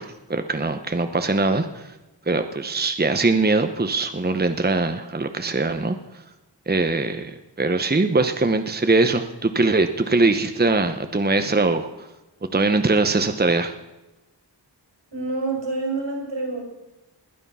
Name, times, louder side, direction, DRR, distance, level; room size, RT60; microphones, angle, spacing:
voice 1, 0.0-1.9 2.3-6.0 6.7-11.9 12.5-13.7, right 3 dB, 20° right, 8 dB, 0.9 m, -22 dB
voice 2, 15.1-16.6, right 3 dB, 80° right, 0 dB, 5.4 m, -27 dB
20.5 x 9.9 x 5.6 m, 1.0 s
wide cardioid pair, 45°, 43 cm